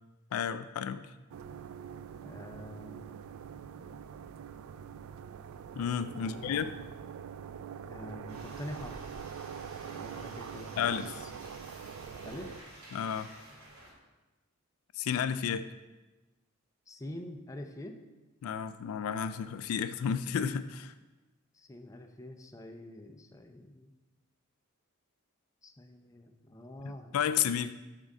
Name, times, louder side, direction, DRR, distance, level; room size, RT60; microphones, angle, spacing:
voice 1, 0.3-1.1 5.8-6.8 10.8-11.1 12.9-13.3 14.9-15.7 18.4-20.9 26.8-27.7, left 8 dB, 75° left, 12 dB, 0.3 m, -32 dB
sound 1, 1.3-12.6, right 7 dB, 65° right, 0.3 m, -44 dB
voice 2, 2.2-3.1 6.2-6.7 7.8-9.0 9.8-11.0 12.2-12.6 16.9-18.0 21.5-23.9 25.6-27.2, left 1 dB, 15° left, 5 dB, 0.4 m, -45 dB
sound 2, 8.3-13.9, right 1 dB, 90° right, 2.2 m, -51 dB
7.2 x 3.6 x 5.3 m, 1.1 s
head